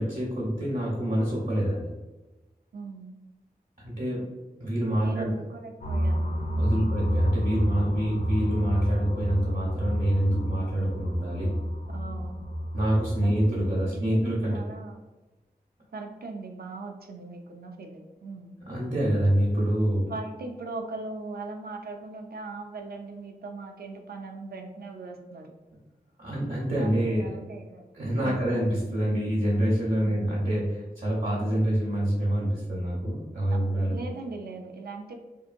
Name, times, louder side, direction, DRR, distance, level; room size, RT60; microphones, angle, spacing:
voice 1, 0.0-1.9 3.8-4.3 4.6-5.3 6.6-11.5 12.7-14.6 18.7-20.1 26.2-27.3 27.9-33.9, right 1 dB, 50° right, -6 dB, 0.9 m, -26 dB
voice 2, 2.7-3.1 5.0-6.2 6.6-6.9 11.9-12.4 13.2-13.6 13.8-15.0 15.9-18.5 20.0-25.5 26.8-27.9 28.2-28.6 30.0-30.3 33.5-35.1, right 3 dB, 80° right, 3 dB, 0.4 m, -39 dB
sound 1, 5.8-13.9, equal, 65° left, 0.4 m, -30 dB
2.7 x 2.5 x 2.5 m, 1.1 s
wide cardioid pair, 90°, 16 cm